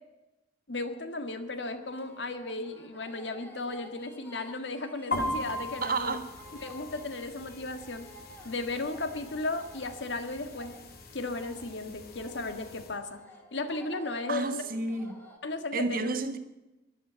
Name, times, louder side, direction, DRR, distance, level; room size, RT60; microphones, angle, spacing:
voice 1, 0.7-6.2 6.6-8.1 8.4-10.7 11.1-13.2 13.5-14.6 15.4-16.1, left 2 dB, 80° left, 8 dB, 1.7 m, -35 dB
sound 1, 1.3-15.4, equal, 10° left, 2.1 m, -53 dB
sound 2, 5.1-12.9, left 1 dB, 55° left, 2.3 m, -40 dB
voice 2, 5.8-6.2 14.3-15.1 15.7-16.4, right 3 dB, 50° right, 8 dB, 1.5 m, -30 dB
13.0 x 11.5 x 8.6 m, 0.99 s
head